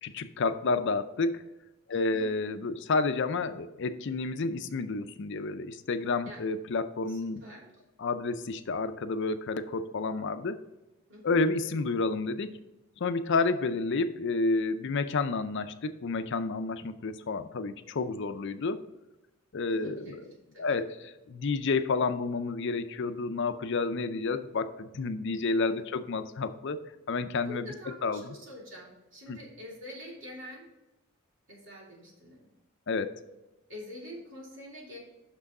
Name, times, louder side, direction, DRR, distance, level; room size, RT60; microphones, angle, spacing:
voice 1, 0.0-1.4 1.9-7.4 8.0-10.6 11.2-12.5 13.0-18.8 19.5-20.2 20.6-26.8 27.1-27.7 28.0-28.3 29.3-29.4 32.9-33.2, left 3 dB, 60° left, 10 dB, 0.5 m, -30 dB
voice 2, 1.9-2.3 6.3-6.4 7.1-7.7 11.1-11.4 19.7-20.2 20.5-20.8 25.7-25.8 27.4-30.7 31.5-32.5 33.7-35.0, left 1 dB, 65° right, -3 dB, 3.0 m, -46 dB
6.2 x 6.0 x 5.3 m, 0.99 s
head